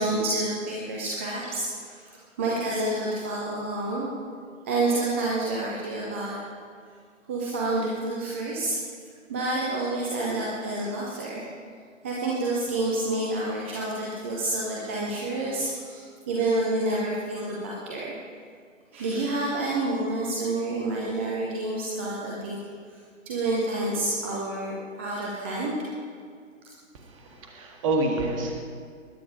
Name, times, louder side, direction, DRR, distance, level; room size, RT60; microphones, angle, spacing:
voice 1, 0.0-4.1 4.6-6.4 7.3-8.8 9.3-11.4 12.0-18.1 18.9-22.6 23.3-25.7, right 2 dB, 10° right, -4 dB, 0.6 m, -28 dB
voice 2, 26.9-28.6, right 2 dB, 25° right, 2 dB, 1.7 m, -28 dB
20.5 x 9.3 x 5.0 m, 2.1 s
figure-of-eight pair, 135°, 39 cm